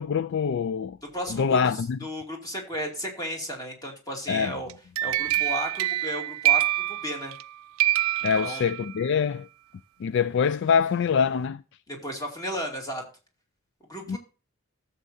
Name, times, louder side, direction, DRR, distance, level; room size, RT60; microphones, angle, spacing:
voice 1, 0.0-1.0 1.3-2.0 4.3-4.6 8.2-9.5 10.0-11.6 14.1-14.2, left 6 dB, 55° left, 0.3 m, -24 dB
voice 2, 1.1-1.6 2.0-4.7 5.0-7.3 8.2-8.6 11.9-13.0 13.9-14.2, equal, 20° left, 2.4 m, -34 dB
sound 1, 4.7-7.5 7.8-9.1, right 14 dB, 85° right, 0.4 m, -26 dB
13.0 x 7.3 x 2.6 m
head